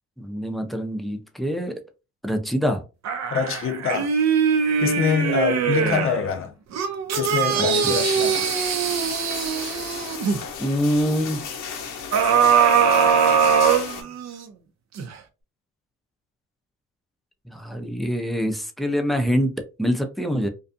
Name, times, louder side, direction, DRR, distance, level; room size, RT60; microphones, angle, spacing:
voice 1, 0.2-1.8 2.2-2.8 5.8-5.9 7.5-7.9 10.6-11.4 17.5-20.5, equal, ahead, 0.5 m, -25 dB
sound 1, 3.0-6.2 6.7-10.4 12.1-14.4 15.0-15.1, right 7 dB, 60° right, 0.6 m, -21 dB
voice 2, 3.3-4.1 4.8-6.5 7.2-8.5, left 7 dB, 45° left, 0.5 m, -25 dB
sound 2, 7.8-14.0, left 6 dB, 85° left, 0.7 m, -35 dB
2.6 x 2.3 x 2.5 m
cardioid pair, 90°, 30 cm